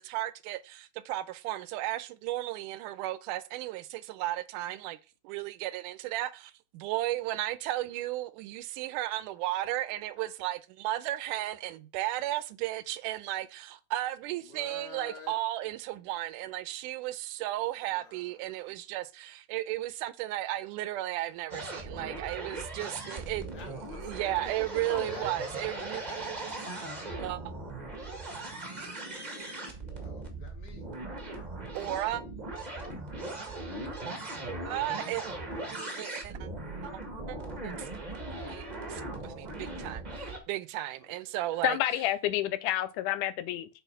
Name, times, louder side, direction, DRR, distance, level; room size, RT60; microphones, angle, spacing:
voice 1, 0.0-5.0 5.2-23.6 24.1-26.5 27.2-27.5 31.7-32.2 34.7-35.2 35.7-36.3 37.3-37.4 37.6-38.0 38.4-41.8, right 15 dB, 90° right, 2.1 m, -34 dB
voice 2, 14.4-15.4 17.9-18.7 23.5-24.4 24.7-25.3 25.6-27.0 30.0-31.5 33.6-33.9 34.9-35.5 35.8-36.1 41.0-41.6, left 4 dB, 60° left, 3.2 m, -49 dB
sound 1, 21.5-40.4, right 2 dB, 65° right, 0.4 m, -39 dB
voice 3, 41.6-43.7, left 13 dB, 85° left, 2.2 m, -29 dB
8.1 x 4.1 x 5.5 m
omnidirectional pair, 3.6 m